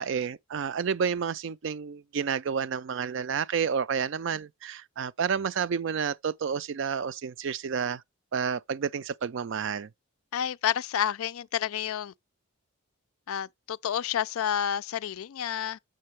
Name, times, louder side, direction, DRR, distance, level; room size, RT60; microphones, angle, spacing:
voice 1, 0.0-8.0 8.3-9.9, right 6 dB, 55° right, 0.4 m, -30 dB
voice 2, 10.3-12.1 13.3-15.8, left 9 dB, 70° left, 0.4 m, -30 dB
7.5 x 6.4 x 3.2 m
head